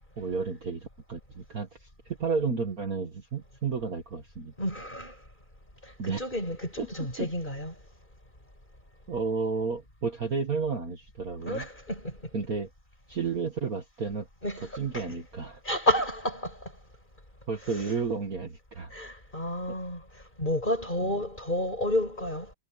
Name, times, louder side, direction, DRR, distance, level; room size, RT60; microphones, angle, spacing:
voice 1, 0.2-4.5 6.0-6.2 7.2-7.3 9.1-11.6 12.3-12.7 13.1-14.3 14.8-15.6 17.5-18.9, right 5 dB, 45° right, 2.1 m, -32 dB
voice 2, 4.6-5.1 6.0-7.7 11.5-12.2 14.4-15.1 15.6-16.6 17.7-17.9 18.9-20.0 20.4-22.5, left 1 dB, 20° left, 7.4 m, -30 dB
omnidirectional pair, 2.3 m